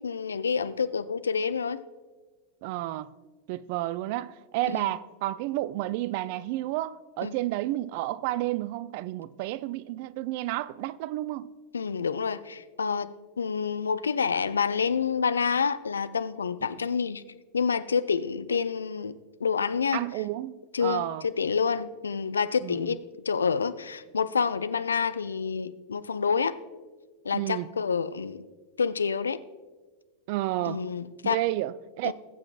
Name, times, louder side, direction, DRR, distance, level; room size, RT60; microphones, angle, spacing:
voice 1, 0.0-1.8 4.7-4.9 7.2-7.3 11.7-17.2 17.5-19.2 19.4-20.0 20.7-23.0 23.3-26.6 27.2-28.4 28.8-29.4 30.6-31.4 32.0-32.1, left 6 dB, 70° left, 0.4 m, -28 dB
voice 2, 2.6-3.1 3.5-11.5 16.8-16.9 19.9-21.3 22.6-23.0 27.3-27.7 30.3-30.8 31.2-32.1, right 16 dB, 45° right, 0.3 m, -31 dB
21.0 x 7.7 x 2.3 m
figure-of-eight pair, 90°, 0 cm